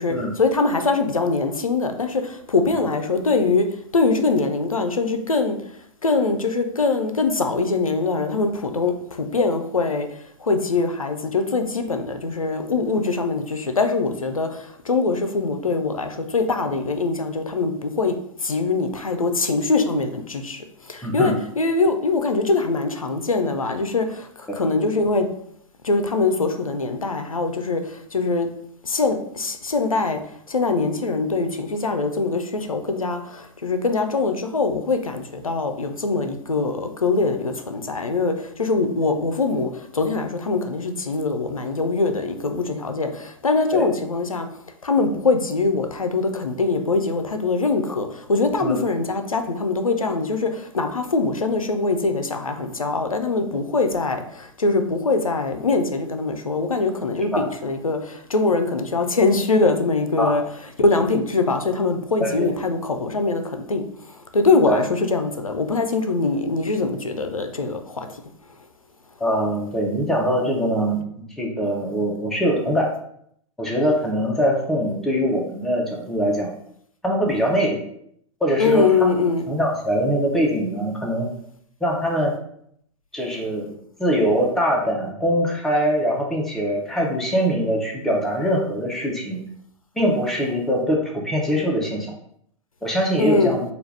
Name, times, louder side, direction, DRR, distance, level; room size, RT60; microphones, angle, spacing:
voice 1, 0.0-3.7 3.9-5.6 6.0-10.1 10.4-18.2 18.4-25.3 25.8-28.5 28.8-30.2 30.5-44.5 44.8-60.4 60.8-63.9 64.3-68.1 78.6-79.5 93.2-93.6, left 3 dB, 90° left, 7 dB, 0.4 m, -23 dB
voice 2, 21.0-21.3 24.5-24.6 43.7-43.9 48.6-48.7 57.3-57.4 60.2-60.4 62.2-62.5 64.7-64.8 69.2-71.0 71.4-72.9 73.6-76.5 77.0-77.8 78.4-79.1 79.5-81.3 81.8-82.4 83.1-83.7 84.0-89.4 90.0-92.1 92.8-93.6, equal, ahead, -2 dB, 0.6 m, -22 dB
3.3 x 2.3 x 3.2 m, 0.68 s
figure-of-eight pair, 105°, 17 cm